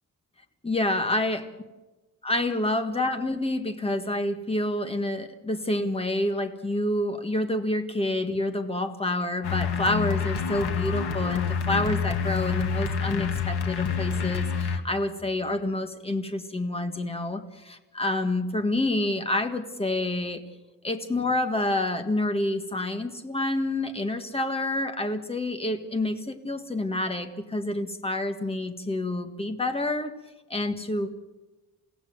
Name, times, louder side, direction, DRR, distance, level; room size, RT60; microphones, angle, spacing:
voice 1, 0.6-1.4 2.2-20.4 20.8-30.1 30.5-31.1, left 1 dB, 15° left, 7 dB, 1.6 m, -28 dB
sound 1, 9.4-14.8, left 6 dB, 85° left, 2.1 m, -27 dB
29.0 x 16.0 x 7.9 m, 1.1 s
wide cardioid pair, 180°, 38 cm